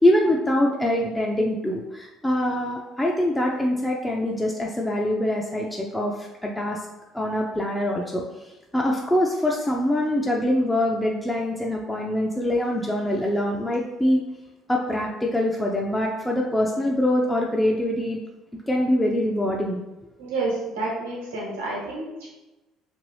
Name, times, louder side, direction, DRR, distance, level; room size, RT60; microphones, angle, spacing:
voice 1, 0.0-6.9 7.1-14.2 14.7-18.2 18.7-19.8, left 1 dB, 10° left, -2 dB, 0.4 m, -24 dB
voice 2, 20.2-22.3, right 2 dB, 85° right, -5 dB, 1.0 m, -29 dB
2.6 x 2.6 x 3.1 m, 1.0 s
hypercardioid pair, 60°, 0 cm